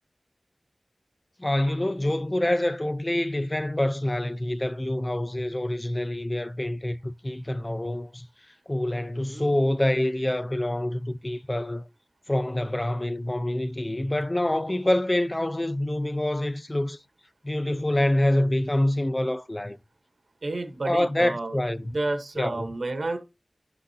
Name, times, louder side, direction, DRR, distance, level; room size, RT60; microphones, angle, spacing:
voice 1, 1.4-8.3 8.7-11.8 12.3-17.0 17.4-19.8 20.9-21.9 22.4-22.7, left 1 dB, 30° left, 0.6 m, -26 dB
voice 2, 20.4-23.2, right 2 dB, 75° right, 1.1 m, -31 dB
11.0 x 6.2 x 2.8 m
wide cardioid pair, 45°, 0 cm